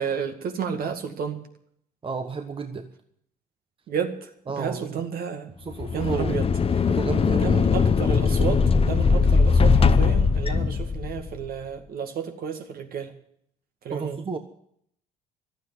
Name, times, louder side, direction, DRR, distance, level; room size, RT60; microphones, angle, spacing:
voice 1, 0.0-1.4 3.9-4.3 4.6-5.5 5.9-6.5 6.8-6.9 7.3-13.1 13.8-14.2, right 7 dB, 55° right, 5 dB, 2.0 m, -31 dB
voice 2, 2.0-2.9 4.5-5.0 5.6-6.4 6.9-7.7 13.9-14.4, right 4 dB, 30° right, 7 dB, 1.2 m, -32 dB
sound 1, 5.7-11.4, left 5 dB, 30° left, 0.8 m, -20 dB
12.5 x 9.2 x 9.7 m, 0.69 s
hypercardioid pair, 60°, 19 cm